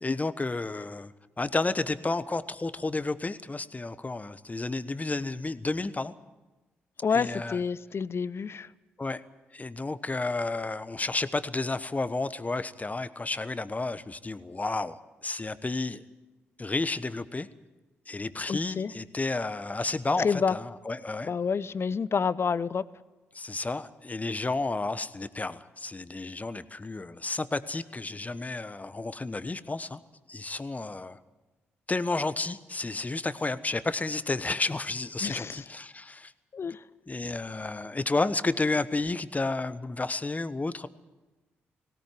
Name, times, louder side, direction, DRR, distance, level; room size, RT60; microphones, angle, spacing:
voice 1, 0.0-6.1 7.1-7.6 9.0-9.2 9.5-15.0 15.2-16.0 16.6-17.5 18.1-21.3 23.3-30.0 30.3-31.2 31.9-36.3 37.1-40.9, left 3 dB, 25° left, 14 dB, 1.2 m, -31 dB
voice 2, 7.0-8.7 18.5-18.9 20.2-20.6 21.2-22.8 35.2-35.6 36.5-36.8, left 6 dB, 45° left, 18 dB, 0.7 m, -28 dB
19.0 x 17.0 x 9.3 m, 1.2 s
hypercardioid pair, 40°, 6 cm